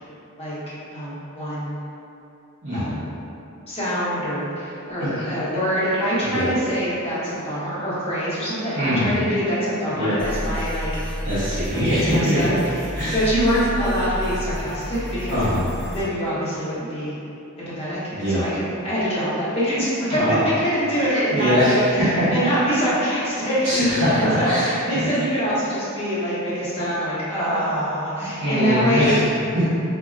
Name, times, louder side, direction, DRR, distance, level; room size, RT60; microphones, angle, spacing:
voice 1, 0.4-1.8 2.7-3.1 3.7-11.2 11.7-12.5 13.1-15.4 15.9-17.2 17.6-23.9 24.2-29.2, equal, 25° left, -11 dB, 1.0 m, -24 dB
voice 2, 2.6-3.0 5.0-5.3 6.2-6.5 8.7-9.3 9.9-10.2 11.2-12.6 12.9-13.2 15.3-15.6 18.1-18.4 20.1-20.5 21.3-22.3 23.6-25.1 28.2-29.6, equal, 55° right, -13 dB, 1.1 m, -22 dB
sound 1, 10.2-16.0, equal, 5° left, 0.6 m, -31 dB
3.9 x 2.8 x 2.5 m, 2.7 s
head